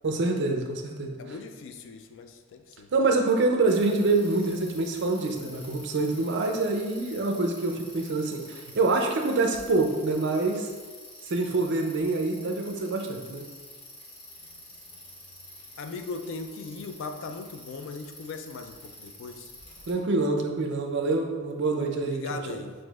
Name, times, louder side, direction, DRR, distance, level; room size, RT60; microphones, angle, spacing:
voice 1, 0.0-1.2 2.9-10.7 11.2-13.4 19.9-22.4, right 3 dB, 55° right, 3 dB, 0.5 m, -26 dB
voice 2, 1.2-2.9 14.5-14.6 15.8-19.5 22.0-22.7, left 4 dB, 60° left, 7 dB, 0.3 m, -39 dB
Bicycle, 3.7-19.9, left 1 dB, 45° left, 1.3 m, -48 dB
5.9 x 2.6 x 2.3 m, 1.4 s
head